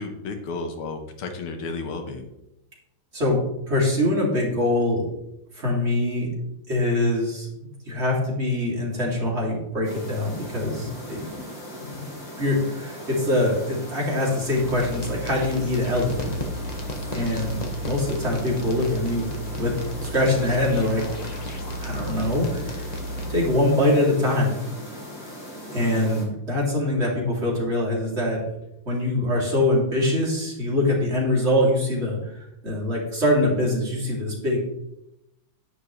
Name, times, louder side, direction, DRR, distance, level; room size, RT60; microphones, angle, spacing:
voice 1, 0.0-2.3, left 3 dB, 85° left, 5 dB, 2.1 m, -32 dB
voice 2, 3.7-5.1 5.5-6.3 6.7-7.5 7.9-11.3 11.8-12.0 12.4-16.3 17.1-19.3 19.5-19.8 20.0-21.0 21.8-22.9 23.3-24.5 25.7-28.4 28.8-34.6, left 1 dB, 30° right, -4 dB, 3.1 m, -23 dB
sound 1, 9.8-26.2, left 1 dB, 60° left, 4.2 m, -39 dB
sound 2, 14.2-23.6, equal, 25° left, 1.0 m, -33 dB
11.0 x 9.9 x 3.2 m, 0.86 s
omnidirectional pair, 2.3 m